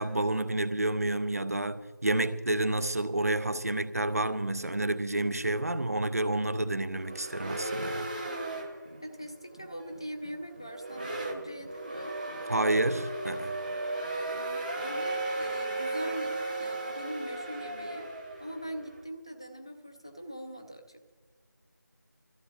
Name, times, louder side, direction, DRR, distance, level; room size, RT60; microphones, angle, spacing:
voice 1, 0.0-8.1 12.5-13.6, right 2 dB, 50° right, 0.7 m, -29 dB
sound 1, 6.9-19.0, right 2 dB, 25° right, 1.0 m, -36 dB
voice 2, 9.0-12.2 14.3-18.1 18.4-21.1, equal, 15° left, 0.5 m, -42 dB
23.5 x 14.5 x 2.7 m
figure-of-eight pair, 170°, 11 cm